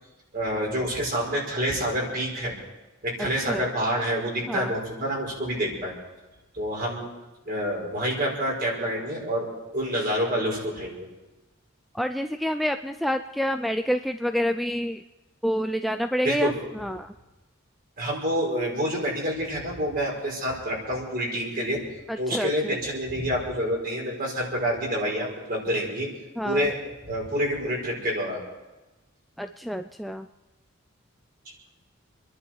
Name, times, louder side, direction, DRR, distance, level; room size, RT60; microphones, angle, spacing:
voice 1, 0.3-2.5 3.0-5.9 6.5-7.1 7.5-11.1 16.2-16.5 18.0-21.8 22.2-26.1 26.4-26.8 27.0-28.5, equal, 45° right, -2 dB, 5.5 m, -27 dB
voice 2, 11.9-15.0 15.4-17.1 22.1-22.8 26.4-26.7 29.4-30.3, equal, ahead, 6 dB, 0.4 m, -28 dB
28.0 x 11.0 x 4.7 m, 1.1 s
head